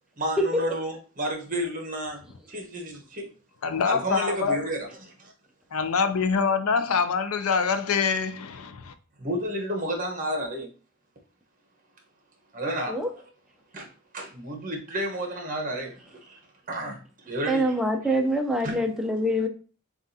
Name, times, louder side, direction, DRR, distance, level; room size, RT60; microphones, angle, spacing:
voice 1, 0.2-2.2 2.5-3.3 3.8-5.1 9.2-10.7 12.5-13.0 13.7-13.9 14.1-15.9 16.3-16.4 16.7-17.0 17.3-18.2 18.6-18.8, right 1 dB, 40° right, 1.1 m, -31 dB
voice 2, 3.6-4.6 5.7-8.9, left 5 dB, 90° left, 0.5 m, -25 dB
voice 3, 17.5-19.5, equal, ahead, 0.6 m, -25 dB
7.2 x 2.4 x 2.7 m
head